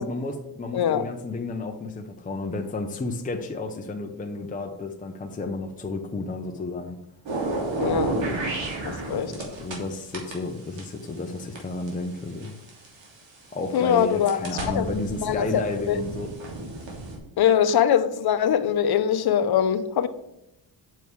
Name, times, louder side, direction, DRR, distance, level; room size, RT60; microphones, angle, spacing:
voice 1, 0.0-7.0 9.3-12.6 13.5-16.3, left 3 dB, 20° left, 0.8 m, -32 dB
voice 2, 0.7-1.0 7.8-8.1 8.8-9.3 13.7-14.4 14.7-14.9 15.2-16.0 17.4-20.1, left 9 dB, 60° left, 0.8 m, -22 dB
sound 1, 7.3-9.8 10.1-13.1 13.7-17.2, right 2 dB, 80° right, 3.0 m, -31 dB
9.1 x 6.9 x 4.7 m
cardioid pair, 135°, 44 cm